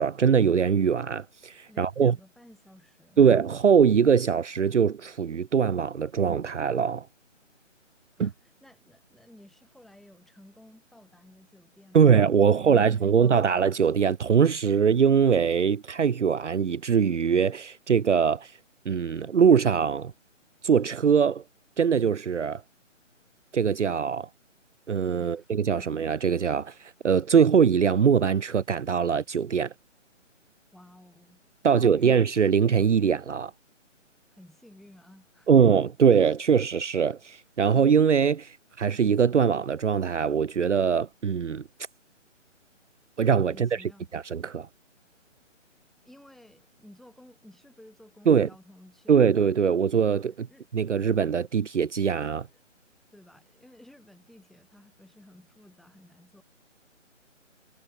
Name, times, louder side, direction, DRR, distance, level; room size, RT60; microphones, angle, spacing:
voice 1, 0.0-2.2 3.2-7.1 8.2-8.3 11.9-18.5 18.9-20.1 20.6-21.4 21.8-22.6 23.5-24.3 24.9-29.7 31.6-33.5 35.5-41.6 43.2-43.7 44.1-44.7 48.3-48.5 49.1-50.5 50.7-52.5, right 7 dB, 65° right, 0.7 m, -22 dB
voice 2, 1.7-3.2 8.2-12.2 12.4-13.5 25.2-25.5 25.8-25.9 30.7-31.4 31.7-32.1 34.3-35.6 43.5-44.1 46.0-49.3 49.9-50.7 52.5-52.7 53.1-56.4, left 1 dB, ahead, 5.3 m, -54 dB
figure-of-eight pair, 150°, 38 cm